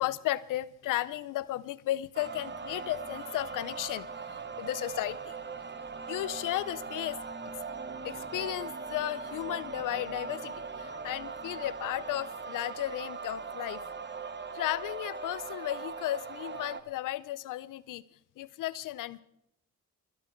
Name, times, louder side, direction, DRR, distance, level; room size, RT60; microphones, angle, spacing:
voice 1, 0.0-5.4 6.1-7.2 8.0-13.8 14.5-18.0 18.4-19.2, left 15 dB, 85° left, 19 dB, 0.7 m, -34 dB
sound 1, 2.1-16.8, right 4 dB, 35° right, 1.5 m, -40 dB
22.5 x 12.0 x 4.5 m, 0.78 s
supercardioid pair, 60°, 31 cm